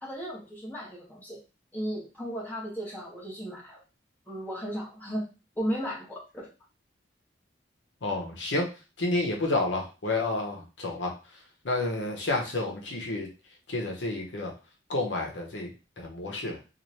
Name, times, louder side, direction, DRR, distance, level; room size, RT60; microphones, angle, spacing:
voice 1, 0.0-1.4 1.7-3.8 4.3-5.3 5.5-6.5, equal, 10° left, -6 dB, 1.5 m, -35 dB
voice 2, 8.0-8.7 9.0-11.1 11.6-13.3 13.7-14.5 14.9-15.7 16.0-16.6, left 2 dB, 80° left, 0 dB, 0.9 m, -30 dB
4.1 x 2.5 x 3.1 m, 0.31 s
head